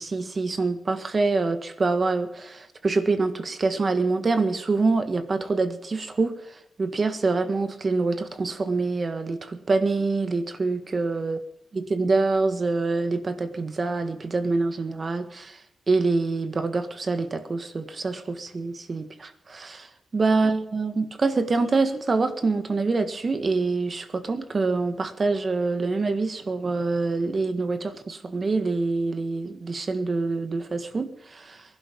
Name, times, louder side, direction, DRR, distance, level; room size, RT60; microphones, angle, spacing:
voice 1, 0.0-11.4 11.7-15.6 15.9-19.9 20.1-31.6, right 3 dB, 35° right, 9 dB, 1.7 m, -25 dB
22.0 x 11.5 x 5.3 m, 0.74 s
wide cardioid pair, 130°, 0 cm